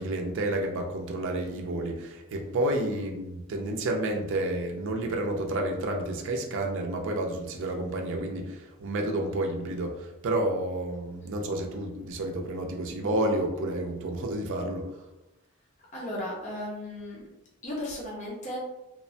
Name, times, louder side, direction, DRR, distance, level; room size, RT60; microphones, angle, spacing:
voice 1, 0.0-14.9, right 1 dB, 60° right, 2 dB, 0.4 m, -30 dB
voice 2, 15.9-17.3 17.6-18.6, left 1 dB, 35° left, -4 dB, 0.6 m, -35 dB
2.9 x 2.1 x 2.6 m, 0.94 s
head